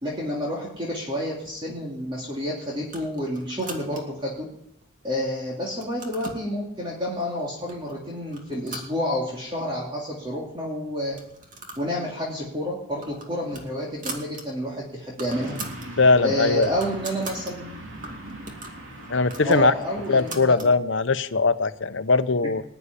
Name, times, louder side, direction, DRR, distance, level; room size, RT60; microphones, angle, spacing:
voice 1, 0.0-4.4 5.0-11.1 11.8-15.5 16.2-17.8 19.4-20.7, equal, 25° right, -4 dB, 3.0 m, -29 dB
sound 1, 2.8-4.3 4.8-5.3 5.6-6.5 7.2-7.3 7.7-8.0 8.3-9.5 9.9-10.0 10.2-10.3 11.0-11.9 12.2-12.4 12.8-14.4 14.8-14.9 15.1-15.9 16.3-17.5 18.0-20.7, right 2 dB, 40° right, 2.5 m, -40 dB
sound 2, 15.3-20.4, right 1 dB, 75° right, 3.3 m, -40 dB
voice 2, 16.0-16.7 19.1-19.7 20.1-22.6, left 3 dB, 65° left, 11 dB, 0.9 m, -20 dB
20.0 x 7.0 x 10.0 m, 0.78 s
head